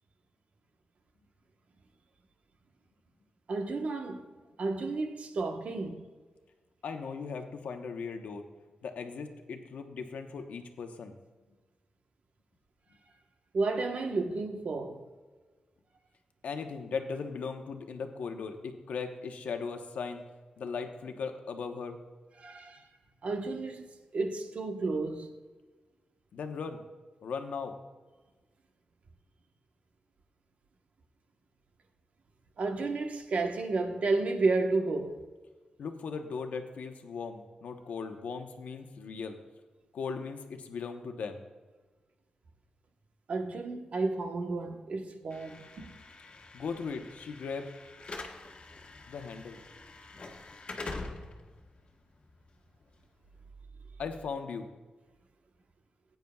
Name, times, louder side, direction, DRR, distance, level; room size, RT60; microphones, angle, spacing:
voice 1, 3.5-4.2 4.6-6.1 13.5-15.0 22.4-22.8 23.2-23.8 24.1-25.3 32.6-35.2 43.3-45.9, right 3 dB, 65° right, 1.1 m, -32 dB
voice 2, 6.8-8.4 8.8-11.1 16.4-20.2 20.6-22.0 26.3-26.8 27.2-27.7 35.8-39.4 39.9-41.4 46.5-47.7 49.1-49.6 54.0-54.7, left 5 dB, 85° left, 1.0 m, -38 dB
Slam / Alarm, 45.3-53.4, left 3 dB, 50° left, 1.3 m, -45 dB
16.0 x 9.2 x 2.3 m
cardioid pair, 80°, 2 cm